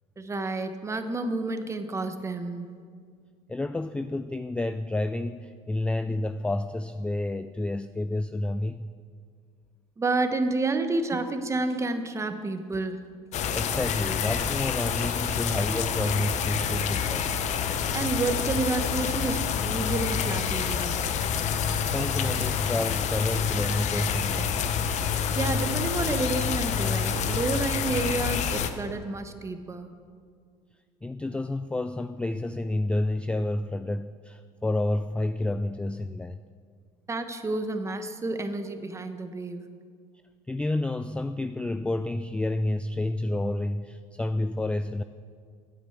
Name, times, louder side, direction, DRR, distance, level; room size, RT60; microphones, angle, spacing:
voice 1, 0.2-2.8 10.0-13.1 17.9-21.0 25.3-29.9 37.1-39.7, right 3 dB, 20° right, 8 dB, 1.1 m, -30 dB
voice 2, 3.5-8.9 13.5-17.3 21.8-24.6 31.0-36.4 40.5-45.0, left 2 dB, 5° left, 11 dB, 0.3 m, -29 dB
sound 1, 13.3-28.7, left 7 dB, 50° left, 0.9 m, -28 dB
9.7 x 8.7 x 8.0 m, 2.1 s
supercardioid pair, 95°, 15 cm